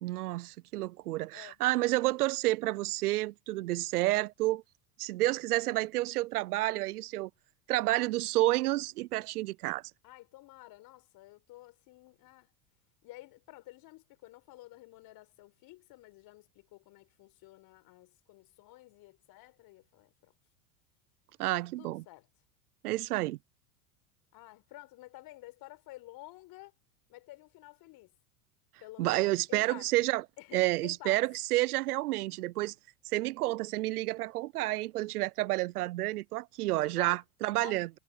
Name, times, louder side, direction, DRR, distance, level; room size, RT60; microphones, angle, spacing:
voice 1, 0.0-4.6 5.0-7.3 7.7-9.8 21.4-22.0 22.8-23.4 29.0-30.2 30.5-32.7 33.1-37.9, right 18 dB, 85° right, 0.5 m, -30 dB
voice 2, 10.0-12.5 13.0-20.3 21.5-22.3 24.3-26.7 27.1-28.1 28.8-29.9 30.4-31.2 36.9-37.2 37.6-37.8, left 18 dB, 50° left, 4.6 m, -51 dB
hypercardioid pair, 100°, 44 cm